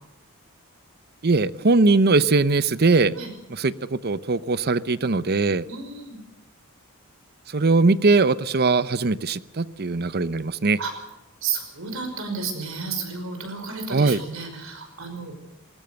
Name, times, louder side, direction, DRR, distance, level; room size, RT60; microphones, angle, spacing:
voice 1, 1.2-3.1 3.5-5.6 7.5-10.8 13.9-14.2, right 3 dB, 50° right, 16 dB, 0.8 m, -20 dB
voice 2, 5.7-6.2 10.8-10.9 11.4-15.3, right 5 dB, 70° right, 5 dB, 5.4 m, -32 dB
20.0 x 19.5 x 7.9 m, 0.96 s
head